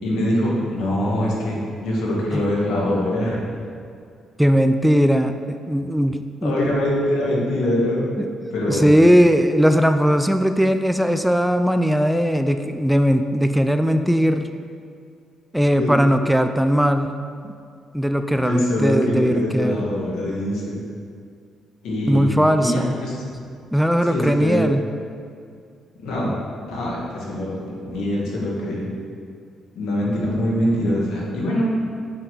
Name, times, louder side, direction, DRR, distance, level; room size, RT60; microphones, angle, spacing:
voice 1, 0.0-3.4 6.4-8.1 8.5-9.0 15.7-15.9 18.3-20.8 21.8-23.2 24.0-24.7 26.0-26.3 26.6-28.9 29.7-31.7, left 1 dB, 85° left, -4 dB, 2.0 m, -23 dB
voice 2, 4.4-6.6 8.7-14.5 15.5-17.2 17.4-17.5 17.9-19.8 22.1-22.9 23.7-24.8, equal, ahead, 8 dB, 0.4 m, -18 dB
6.7 x 5.5 x 5.6 m, 2.3 s
cardioid pair, 90°, 0 cm